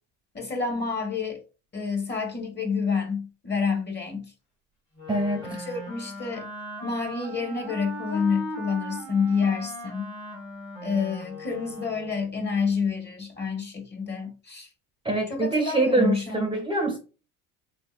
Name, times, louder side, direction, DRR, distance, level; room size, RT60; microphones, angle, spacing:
voice 1, 0.3-1.4 1.7-4.3 5.5-6.5 6.8-10.1 10.8-14.7 15.3-16.6, left 5 dB, 30° left, 1.2 m, -28 dB
Wind instrument woodwind instrument, 4.9-12.3, equal, 90° left, 1.7 m, -38 dB
voice 2, 5.1-5.6 15.0-17.0, right 2 dB, 15° right, 0.6 m, -24 dB
3.6 x 2.7 x 2.4 m
supercardioid pair, 85°, 34 cm